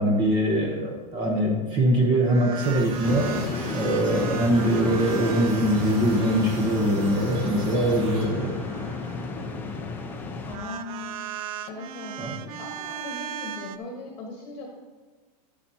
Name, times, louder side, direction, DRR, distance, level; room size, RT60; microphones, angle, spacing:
voice 1, 0.0-3.4 3.7-8.5 12.2-12.4, right 1 dB, 25° right, 1 dB, 0.9 m, -23 dB
sound 1, 2.2-9.6 10.4-13.8, right 9 dB, 65° right, 0.6 m, -38 dB
sound 2, 2.6-8.3, right 2 dB, 45° right, 3.3 m, -41 dB
sound 3, 3.0-10.6, left 4 dB, 10° left, 0.6 m, -32 dB
voice 2, 10.4-11.2 11.7-12.2 12.6-14.7, left 3 dB, 25° left, 0 dB, 1.3 m, -38 dB
10.5 x 10.0 x 2.8 m, 1.4 s
supercardioid pair, 170°, 20 cm